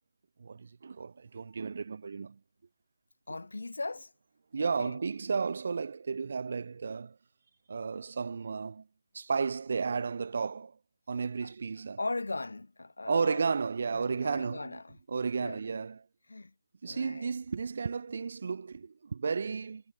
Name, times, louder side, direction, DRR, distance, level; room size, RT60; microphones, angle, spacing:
voice 1, 0.4-2.4 4.5-7.2 7.7-8.8 9.1-10.8 11.1-12.0 13.1-14.8 15.1-16.0 16.8-19.8, right 5 dB, 30° right, 2.3 m, -33 dB
voice 2, 3.3-4.1 4.6-5.0 11.4-11.5 12.0-13.4 13.9-15.0 15.4-15.6 16.3-16.5 16.9-17.3, left 2 dB, 70° left, 7.5 m, -38 dB
figure-of-eight pair, 180°, 0 cm